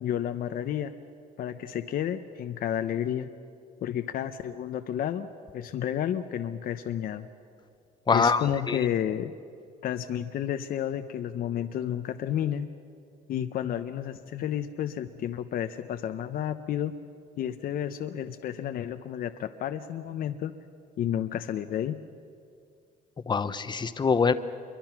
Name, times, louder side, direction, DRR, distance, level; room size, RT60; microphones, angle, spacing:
voice 1, 0.0-0.9 1.4-3.3 3.8-5.3 5.5-7.3 8.1-9.3 9.8-12.7 13.3-16.9 17.4-20.5 21.0-22.0, left 10 dB, 60° left, 8 dB, 0.9 m, -31 dB
voice 2, 8.1-8.8 23.3-24.3, left 5 dB, 25° left, 11 dB, 1.0 m, -24 dB
27.5 x 23.0 x 6.0 m, 2.3 s
cardioid pair, 110°, 17 cm